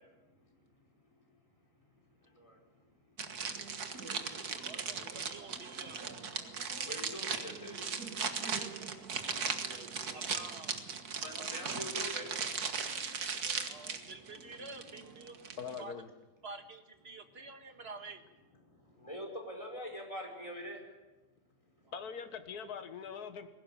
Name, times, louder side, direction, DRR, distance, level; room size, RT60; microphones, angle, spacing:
sound 1, 3.2-15.8, right 6 dB, 65° right, 2.0 m, -38 dB
voice 1, 4.5-6.0 10.1-10.8 13.7-15.4 15.8-15.9 16.4-18.2, right 3 dB, 40° right, 7 dB, 1.8 m, -49 dB
voice 2, 6.9-7.8 11.2-12.5 19.0-20.8, equal, 20° left, 1 dB, 5.1 m, -43 dB
voice 3, 15.6-16.1 21.9-23.5, left 6 dB, 65° left, 8 dB, 1.9 m, -42 dB
21.0 x 17.5 x 9.1 m, 1.1 s
omnidirectional pair, 1.8 m